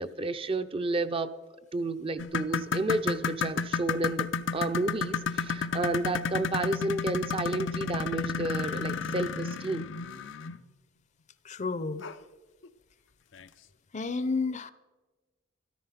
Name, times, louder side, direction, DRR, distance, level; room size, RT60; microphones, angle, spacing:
voice 1, 0.0-1.3 1.7-9.8, right 2 dB, 30° right, 10 dB, 0.6 m, -31 dB
sound 1, 2.2-10.6 12.0-12.1 12.6-12.7 13.4-13.5, left 5 dB, 80° left, 0.6 m, -32 dB
voice 2, 11.4-12.0 13.9-14.7, left 4 dB, 40° left, 15 dB, 0.6 m, -31 dB
13.5 x 13.5 x 5.8 m, 1.2 s
head